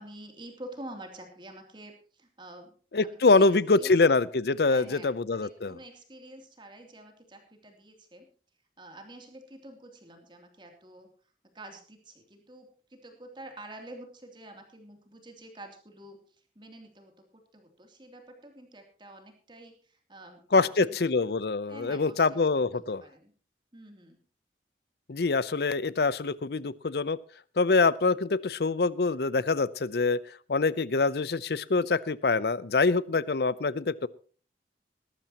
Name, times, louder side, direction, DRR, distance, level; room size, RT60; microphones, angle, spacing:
voice 1, 0.0-2.7 3.0-3.5 3.8-4.2 4.7-8.3 8.8-11.1 11.5-16.2 16.5-21.3 21.7-22.2 22.5-23.3 23.7-24.2, right 1 dB, 25° right, 4 dB, 2.9 m, -48 dB
voice 2, 2.9-5.7 20.5-23.0 25.1-27.2 27.6-30.2 30.5-34.1, left 3 dB, 65° left, 19 dB, 0.6 m, -25 dB
19.5 x 13.5 x 2.9 m, 0.41 s
head